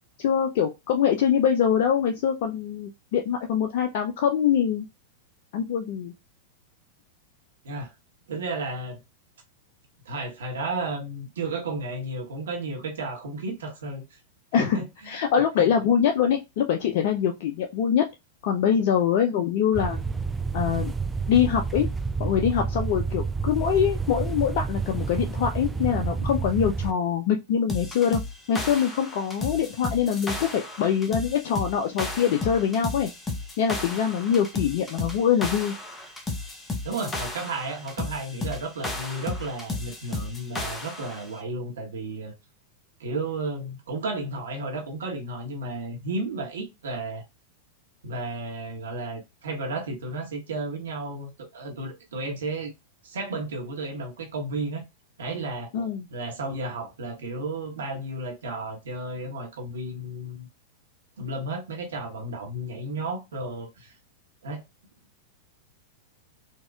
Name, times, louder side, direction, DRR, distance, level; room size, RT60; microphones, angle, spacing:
voice 1, 0.2-4.9 5.5-6.1 14.5-18.1 18.4-20.0 20.5-20.9 21.3-21.9 22.2-28.2 28.5-33.1 33.6-35.7 55.7-56.1, left 8 dB, 55° left, 0.4 m, -24 dB
voice 2, 8.3-9.0 10.0-14.2 14.6-15.1 15.6-15.7 36.8-42.3 43.0-47.2 48.0-52.7 53.0-54.8 55.2-55.7 56.1-60.5 61.2-63.9 64.4-64.6, right 2 dB, 70° right, 1.0 m, -33 dB
sound 1, 19.7-26.9, right 4 dB, 10° right, 0.4 m, -29 dB
sound 2, 27.7-41.3, left 2 dB, 15° left, 0.8 m, -34 dB
4.1 x 2.3 x 2.3 m
figure-of-eight pair, 95°, 0 cm